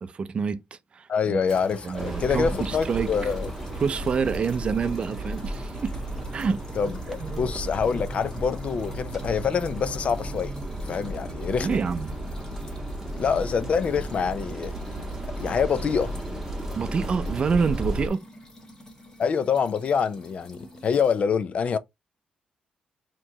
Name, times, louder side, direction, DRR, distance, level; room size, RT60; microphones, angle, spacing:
voice 1, 0.0-1.4 1.8-3.3 3.8-6.0 6.3-6.9 7.2-7.5 11.6-12.1 16.8-18.2, right 5 dB, 35° right, 0.5 m, -27 dB
voice 2, 1.1-3.5 6.8-10.5 10.9-11.7 13.2-14.7 15.4-16.1 19.2-21.8, left 6 dB, 45° left, 0.5 m, -26 dB
sound 1, 1.5-21.2, equal, 20° left, 1.6 m, -45 dB
sound 2, 2.0-18.1, right 1 dB, 10° right, 1.3 m, -34 dB
4.4 x 3.1 x 2.8 m
cardioid pair, 130°, 3 cm